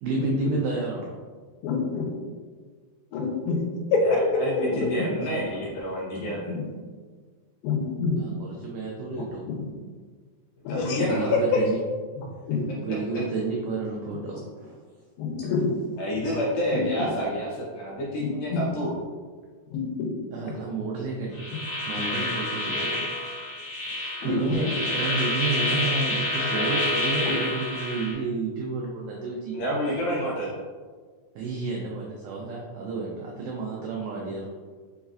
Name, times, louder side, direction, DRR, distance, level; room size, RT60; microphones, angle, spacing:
voice 1, 0.0-1.1 8.2-9.4 10.8-11.8 12.8-14.8 20.3-21.5 21.9-22.9 23.8-24.7 24.9-29.6 31.4-34.5, right 3 dB, 85° right, -2 dB, 1.8 m, -31 dB
voice 2, 1.6-2.1 3.1-3.6 3.9-4.0 4.6-5.1 6.1-6.6 7.6-8.2 9.5-9.6 10.7-11.1 12.2-12.6 15.2-15.7 16.7-17.1 18.2-18.6 19.7-20.1 24.2-24.6 25.7-25.8 27.2-27.3, left 5 dB, 90° left, 0 dB, 2.6 m, -28 dB
voice 3, 4.0-6.5 10.7-11.6 12.9-13.2 16.0-19.1 22.1-22.3 29.5-30.5, equal, 70° left, -6 dB, 1.8 m, -29 dB
sound 1, 21.3-28.1, left 1 dB, 55° left, 2.2 m, -28 dB
5.2 x 3.9 x 2.4 m, 1.5 s
omnidirectional pair, 4.2 m